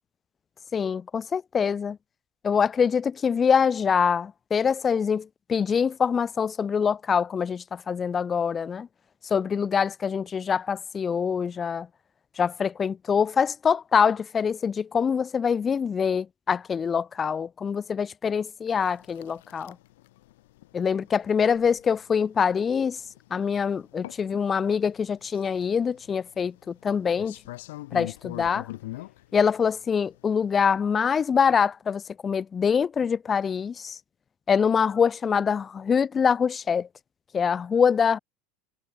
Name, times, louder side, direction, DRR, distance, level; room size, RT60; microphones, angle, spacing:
voice 1, 0.7-2.0 2.4-8.9 9.3-11.9 12.4-19.8 20.7-23.0 23.3-27.3 27.9-28.7 29.3-34.0 34.5-36.9 37.3-38.2, left 6 dB, 25° left, 0.3 m, -24 dB
sound 1, 18.7-30.5, left 18 dB, 80° left, 1.0 m, -44 dB
supercardioid pair, 130°, 0 cm